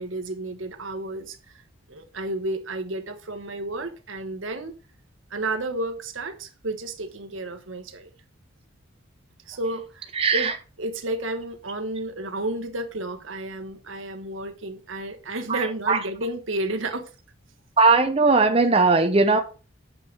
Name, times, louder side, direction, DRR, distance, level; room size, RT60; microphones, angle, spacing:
voice 1, 0.0-1.4 1.9-4.7 5.3-8.1 9.5-10.5 10.8-17.1, right 2 dB, 80° right, 1.2 m, -31 dB
voice 2, 10.1-10.5 15.5-16.0 17.8-19.4, right 3 dB, 30° right, 0.7 m, -19 dB
7.5 x 5.4 x 5.1 m
head